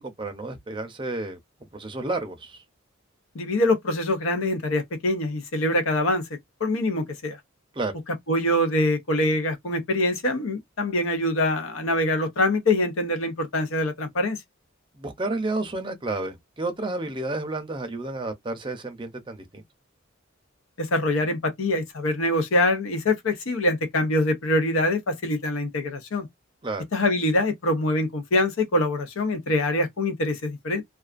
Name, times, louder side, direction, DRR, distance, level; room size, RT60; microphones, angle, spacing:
voice 1, 0.0-1.4 1.7-2.6 7.8-7.9 14.9-19.6 26.6-26.8, right 2 dB, 25° right, 0.5 m, -31 dB
voice 2, 3.3-6.3 6.6-7.4 8.3-14.4 20.8-26.3 26.9-30.8, left 1 dB, 85° left, 0.7 m, -24 dB
2.3 x 2.3 x 2.4 m
head